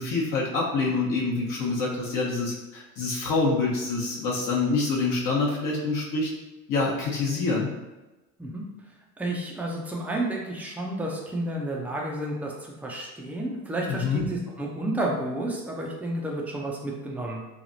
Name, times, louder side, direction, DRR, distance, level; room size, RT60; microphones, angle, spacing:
voice 1, 0.0-6.3 6.7-7.7 13.9-14.2, left 3 dB, 50° left, -4 dB, 1.0 m, -26 dB
voice 2, 9.2-17.4, right 1 dB, 5° right, -2 dB, 0.6 m, -31 dB
3.3 x 2.3 x 2.6 m, 1.1 s
hypercardioid pair, 70°, 42 cm